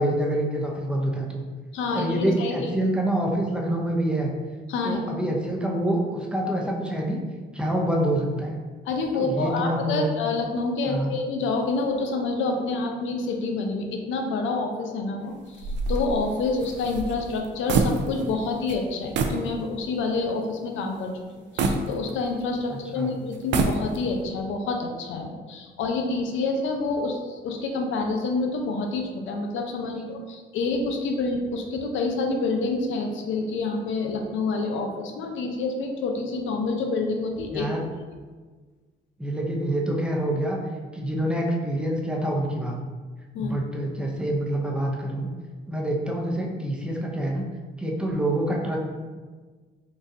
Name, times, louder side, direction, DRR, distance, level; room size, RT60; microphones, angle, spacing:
voice 1, 0.0-1.4 1.9-4.3 4.8-7.2 7.5-8.6 9.1-10.1 10.9-11.2 22.7-23.1 30.0-30.1 37.5-37.8 39.2-40.6 40.9-42.8 43.4-45.3 45.7-47.4 47.8-48.8, right 1 dB, 5° right, -2 dB, 0.6 m, -26 dB
voice 2, 1.7-2.7 4.7-5.2 8.9-37.7 43.3-43.5, left 3 dB, 75° left, 3 dB, 0.6 m, -28 dB
sound 1, 15.6-18.4 18.7-18.8 19.1-19.5 19.9-20.0 21.6-22.6 23.3-24.2, right 3 dB, 65° right, 0.4 m, -26 dB
3.9 x 2.4 x 2.7 m, 1.4 s
cardioid pair, 90°, 20 cm